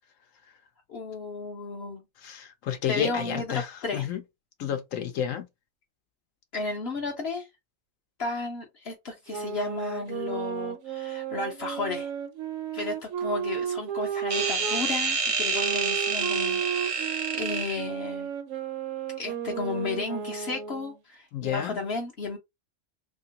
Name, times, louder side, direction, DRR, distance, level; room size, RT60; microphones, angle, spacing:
voice 1, 0.9-2.0 2.9-4.1 6.5-7.5 8.2-12.1 12.7-18.3 19.2-22.4, left 3 dB, 60° left, 0.9 m, -33 dB
voice 2, 2.2-4.2 4.6-5.5 21.3-21.8, left 9 dB, 90° left, 1.1 m, -31 dB
sound 1, 9.3-14.9 15.5-21.0, right 8 dB, 80° right, 1.0 m, -33 dB
sound 2, 14.3-17.8, right 5 dB, 55° right, 0.3 m, -28 dB
2.9 x 2.9 x 2.8 m
omnidirectional pair, 1.3 m